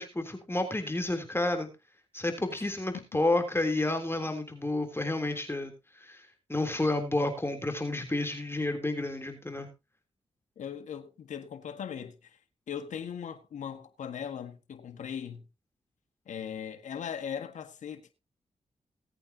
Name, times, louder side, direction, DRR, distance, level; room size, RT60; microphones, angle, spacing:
voice 1, 0.0-1.7 2.1-9.7, left 2 dB, 20° left, 3.3 m, -30 dB
voice 2, 10.6-12.4 12.7-15.4 16.3-18.1, left 8 dB, 80° left, 1.6 m, -39 dB
18.5 x 8.7 x 2.9 m
supercardioid pair, 45°, 13 cm